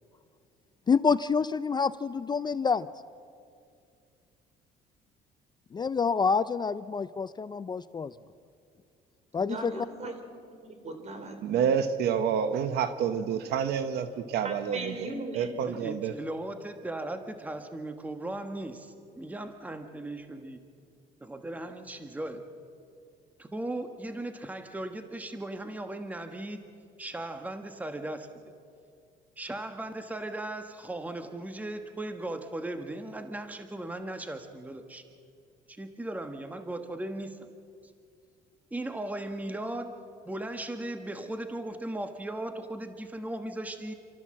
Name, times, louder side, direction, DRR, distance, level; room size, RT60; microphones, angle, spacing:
voice 1, 0.9-2.9 5.7-8.1 9.3-9.9, left 5 dB, 25° left, 15 dB, 0.5 m, -27 dB
voice 2, 9.4-10.2 10.7-11.7 14.4-15.6, right 2 dB, 40° right, 6 dB, 3.8 m, -38 dB
voice 3, 11.4-16.1, right 7 dB, 75° right, 10 dB, 1.1 m, -28 dB
voice 4, 15.6-20.6 21.2-22.4 23.4-26.6 27.0-28.3 29.4-35.0 35.7-37.5 38.7-39.9 40.2-43.9, right 1 dB, 10° right, 7 dB, 1.2 m, -37 dB
28.0 x 13.5 x 7.6 m, 2.4 s
cardioid pair, 110°, 17 cm